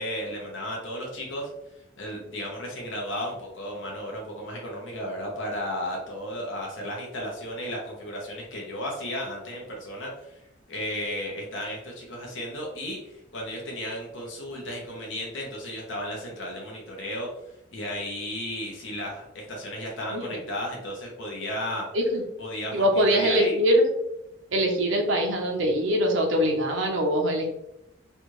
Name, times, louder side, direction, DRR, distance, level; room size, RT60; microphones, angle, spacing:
voice 1, 0.0-1.5 2.0-10.4 10.7-17.3 17.7-21.9 22.4-23.6, equal, 80° left, -1 dB, 1.0 m, -34 dB
voice 2, 22.7-23.8 24.5-27.5, equal, 80° right, 1 dB, 0.8 m, -23 dB
3.3 x 2.5 x 3.1 m, 0.84 s
head